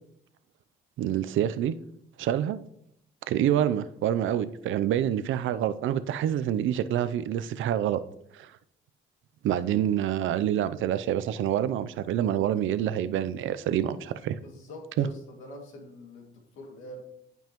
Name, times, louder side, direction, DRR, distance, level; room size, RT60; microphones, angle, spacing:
voice 1, 1.0-1.7 2.2-2.6 3.3-8.0 8.3-8.5 9.4-14.4 15.0-15.1, right 10 dB, 80° right, 0.5 m, -27 dB
voice 2, 14.4-17.0, left 1 dB, 90° left, 2.3 m, -44 dB
15.0 x 5.4 x 3.0 m
cardioid pair, 90°, 20 cm